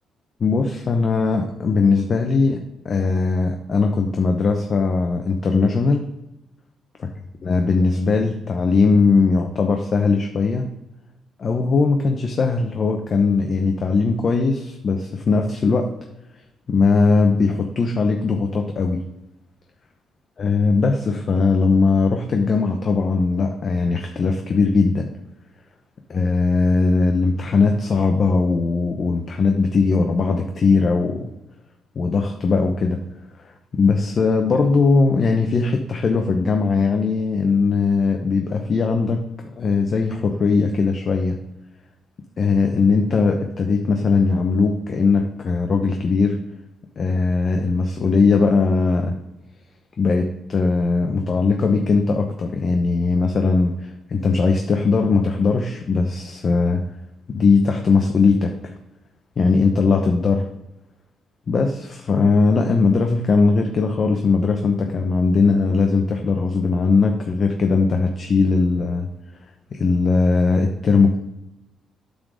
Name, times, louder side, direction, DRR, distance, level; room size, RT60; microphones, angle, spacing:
voice 1, 0.4-6.0 7.4-10.7 11.4-15.9 16.7-19.0 20.4-25.1 26.1-31.3 32.0-33.0 33.7-41.4 42.4-46.4 47.0-49.1 50.0-56.8 57.3-58.7 59.4-60.5 61.5-69.1 69.7-71.2, left 4 dB, 45° left, 4 dB, 0.8 m, -19 dB
8.6 x 3.8 x 6.3 m, 0.92 s
cardioid pair, 90°, 0 cm